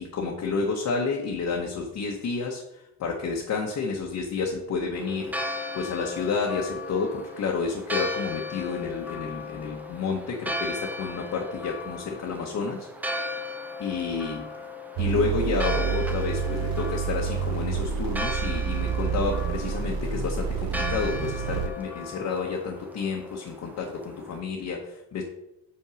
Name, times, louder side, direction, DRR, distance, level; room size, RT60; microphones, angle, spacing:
voice 1, 0.0-13.1 13.8-14.5 15.0-25.2, left 4 dB, 40° left, -1 dB, 1.0 m, -30 dB
Church bell, 4.9-24.4, left 2 dB, 5° right, 0.5 m, -36 dB
sound 1, 15.0-21.7, right 8 dB, 60° right, 0.6 m, -28 dB
Drum kit, 16.4-21.7, left 5 dB, 75° left, 1.4 m, -44 dB
5.7 x 4.5 x 6.1 m, 0.87 s
cardioid pair, 140°, 41 cm